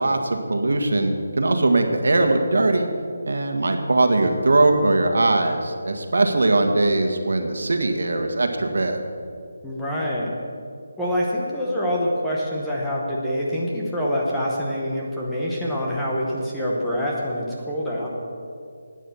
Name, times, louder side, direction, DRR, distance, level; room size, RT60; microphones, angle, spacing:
voice 1, 0.0-2.9 3.2-9.0, right 2 dB, 70° right, 5 dB, 1.6 m, -20 dB
voice 2, 9.6-10.3 11.0-18.1, equal, 5° left, -6 dB, 1.0 m, -25 dB
11.5 x 9.3 x 7.2 m, 2.3 s
hypercardioid pair, 175°, 0 cm